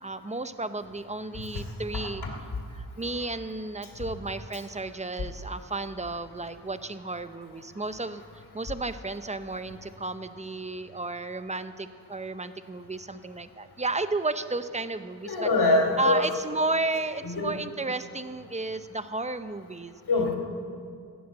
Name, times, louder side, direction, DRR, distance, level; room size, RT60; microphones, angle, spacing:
voice 1, 0.0-2.2 2.7-8.2 8.5-15.5 16.0-19.9, right 2 dB, 20° right, 11 dB, 0.8 m, -33 dB
voice 2, 15.2-16.2 17.2-17.5 20.1-20.4, left 2 dB, 85° left, 1 dB, 3.1 m, -23 dB
16.0 x 10.5 x 7.6 m, 2.3 s
wide cardioid pair, 70°, 38 cm